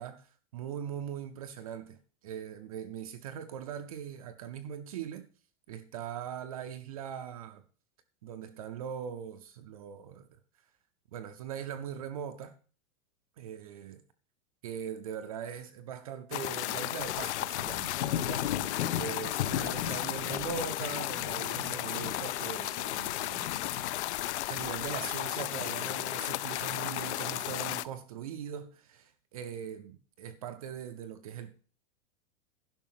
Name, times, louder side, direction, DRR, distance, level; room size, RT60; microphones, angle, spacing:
voice 1, 0.0-5.3 5.7-7.6 8.2-10.4 11.1-12.5 13.4-14.0 14.6-17.9 18.2-18.5 18.9-23.6 24.5-31.5, right 8 dB, 30° right, 0.4 m, -41 dB
sound 1, 16.3-27.8, left 15 dB, 65° left, 0.5 m, -34 dB
sound 2, 16.9-24.5, left 10 dB, 90° left, 1.1 m, -38 dB
11.0 x 5.5 x 5.7 m
supercardioid pair, 175°, 37 cm